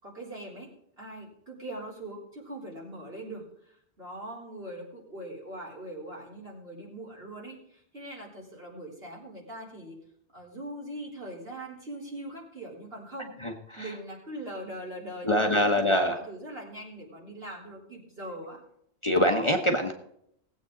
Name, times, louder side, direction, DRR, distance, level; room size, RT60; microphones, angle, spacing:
voice 1, 0.0-0.7 1.0-3.7 4.0-10.0 10.3-13.3 13.8-18.6, right 1 dB, 60° right, -3 dB, 4.0 m, -41 dB
voice 2, 15.2-16.1 19.0-19.9, equal, 30° left, 3 dB, 1.1 m, -23 dB
18.5 x 8.4 x 3.9 m, 0.71 s
omnidirectional pair, 1.1 m